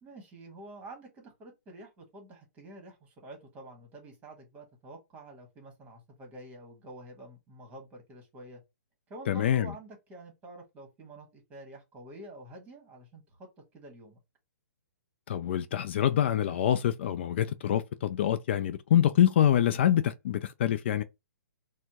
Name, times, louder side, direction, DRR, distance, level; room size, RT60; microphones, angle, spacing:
voice 1, 0.0-8.6 9.1-14.2, right 1 dB, 15° right, 1.4 m, -48 dB
voice 2, 9.3-9.7 15.3-21.0, left 10 dB, 45° left, 0.3 m, -25 dB
4.2 x 2.1 x 2.8 m
figure-of-eight pair, 125°, 9 cm